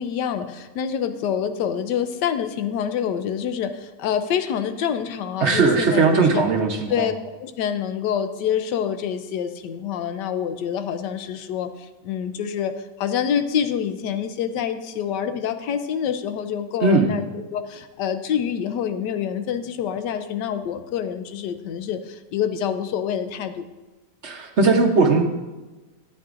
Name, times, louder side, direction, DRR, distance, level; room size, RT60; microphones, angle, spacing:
voice 1, 0.0-6.4 6.9-7.1 7.4-23.6, left 8 dB, 90° left, 9 dB, 1.3 m, -26 dB
voice 2, 5.4-7.1 16.8-17.1 24.2-25.2, right 4 dB, 50° right, 2 dB, 0.9 m, -18 dB
12.0 x 8.7 x 2.5 m, 1.2 s
omnidirectional pair, 1.8 m